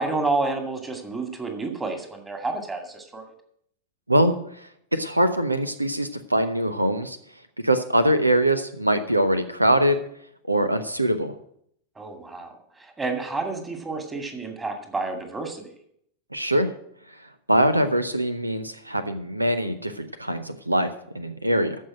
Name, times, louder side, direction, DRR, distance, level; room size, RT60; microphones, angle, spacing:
voice 1, 0.0-3.2 12.0-15.7, right 3 dB, 15° right, 5 dB, 2.1 m, -30 dB
voice 2, 4.1-7.2 7.6-10.0 10.5-11.3 16.3-16.7 17.5-21.8, right 1 dB, 85° right, 11 dB, 0.8 m, -23 dB
14.0 x 5.7 x 7.7 m, 0.70 s
figure-of-eight pair, 90°, 0 cm